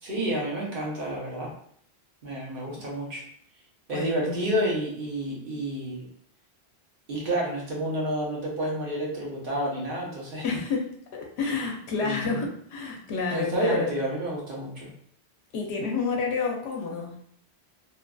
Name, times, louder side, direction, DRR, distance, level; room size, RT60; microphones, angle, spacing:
voice 1, 0.0-1.5 2.2-3.2 3.9-6.1 7.1-10.5 12.0-12.4 13.3-14.9, right 1 dB, 60° right, -4 dB, 1.0 m, -29 dB
voice 2, 3.9-4.7 10.4-13.9 15.5-17.1, left 4 dB, 90° left, 1 dB, 0.9 m, -30 dB
2.7 x 2.4 x 2.2 m, 0.63 s
omnidirectional pair, 1.1 m